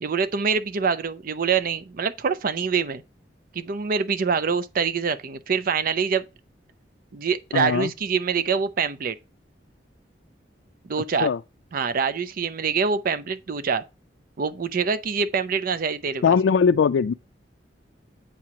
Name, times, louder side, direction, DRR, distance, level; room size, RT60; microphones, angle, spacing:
voice 1, 0.0-3.0 3.5-6.2 7.1-9.2 10.9-11.3 11.7-13.8 14.4-16.4, right 5 dB, 50° right, 0.5 m, -25 dB
voice 2, 7.5-7.9 11.2-11.4 16.2-17.1, left 6 dB, 75° left, 0.3 m, -20 dB
8.5 x 2.9 x 6.0 m
head